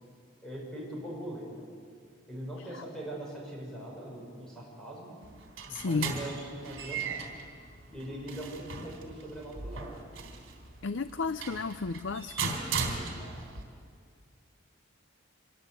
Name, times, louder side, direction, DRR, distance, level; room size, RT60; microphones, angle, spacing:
voice 1, 0.4-1.7 2.3-5.1 5.7-7.3 7.9-10.0 12.7-13.5, right 1 dB, 5° left, -3 dB, 6.3 m, -41 dB
sound 1, 5.2-13.6, right 5 dB, 65° right, 3.5 m, -38 dB
voice 2, 5.7-6.1 10.8-12.6, left 4 dB, 60° left, 13 dB, 0.5 m, -32 dB
25.5 x 22.0 x 8.0 m, 2.2 s
head